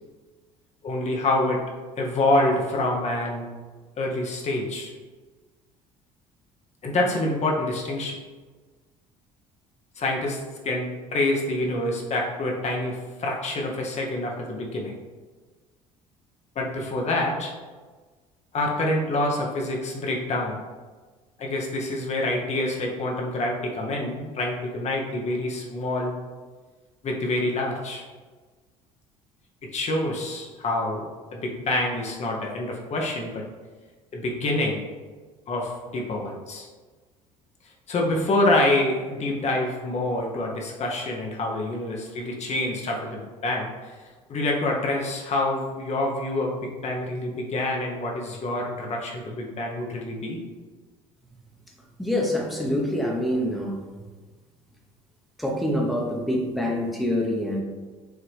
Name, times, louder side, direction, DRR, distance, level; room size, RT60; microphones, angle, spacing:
voice 1, 0.8-1.6 2.0-3.5 4.0-4.9 6.8-8.2 10.0-14.9 16.6-17.5 18.5-20.6 21.4-26.1 27.0-28.0 29.6-33.4 34.1-34.8 35.5-36.7 37.9-43.9 44.3-50.4, left 2 dB, 45° left, -1 dB, 0.8 m, -26 dB
voice 2, 52.0-53.9 55.4-57.6, left 1 dB, ahead, -1 dB, 0.9 m, -26 dB
4.8 x 2.8 x 3.3 m, 1.4 s
hypercardioid pair, 70°, 16 cm